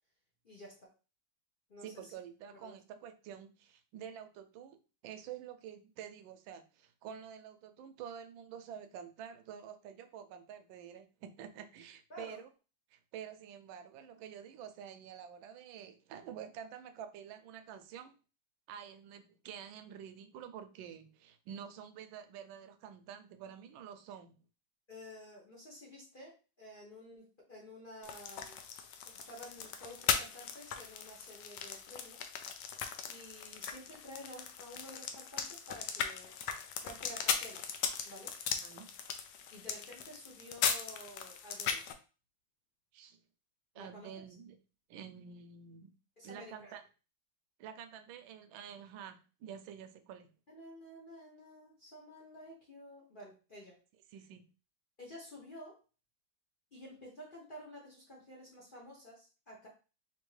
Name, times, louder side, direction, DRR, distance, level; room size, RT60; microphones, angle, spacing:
voice 1, 0.4-0.9 1.7-2.1 2.5-2.7 12.1-12.4 24.9-28.6 29.1-32.3 33.0-36.3 36.8-37.7 38.0-38.4 39.5-41.8 43.7-44.2 46.2-46.7 50.5-53.8 55.0-55.8 56.7-59.7, equal, 60° left, -5 dB, 0.5 m, -51 dB
voice 2, 1.8-4.8 5.0-12.5 12.9-18.1 18.7-24.4 38.6-38.9 42.9-43.2 43.7-44.6 44.9-45.9 46.2-46.8 47.6-50.3 54.1-54.4, right 8 dB, 75° right, 8 dB, 1.2 m, -48 dB
sound 1, 28.0-41.9, left 7 dB, 85° left, 0.9 m, -38 dB
4.3 x 2.7 x 3.1 m, 0.34 s
omnidirectional pair, 2.4 m